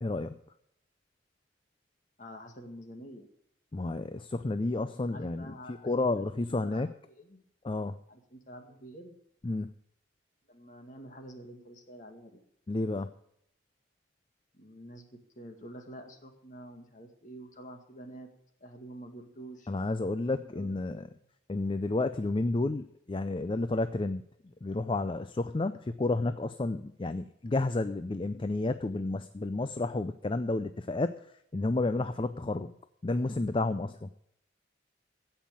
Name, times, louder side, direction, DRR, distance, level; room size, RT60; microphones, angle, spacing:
voice 1, 0.0-0.4 3.7-5.5 5.8-6.9 7.6-8.0 9.4-9.7 12.7-13.1 19.7-21.1 21.5-24.2 24.6-31.2 31.5-32.8 33.0-34.1, left 2 dB, 25° left, 11 dB, 0.4 m, -31 dB
voice 2, 2.2-3.3 5.1-6.0 6.6-6.8 7.1-7.4 8.1-9.2 10.5-12.4 14.5-18.3 18.6-19.7 20.5-21.1, right 1 dB, 40° left, 4 dB, 1.9 m, -48 dB
16.0 x 5.7 x 8.5 m, 0.75 s
head